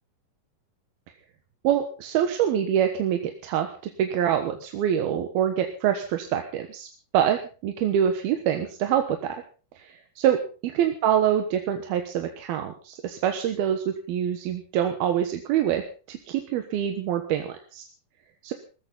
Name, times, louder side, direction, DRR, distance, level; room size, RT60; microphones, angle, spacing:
voice 1, 1.6-3.7 4.0-6.9 7.1-9.4 9.8-10.4 10.6-17.8 18.4-18.5, right 9 dB, 85° right, 5 dB, 3.2 m, -25 dB
20.0 x 15.5 x 4.0 m, 0.35 s
omnidirectional pair, 4.3 m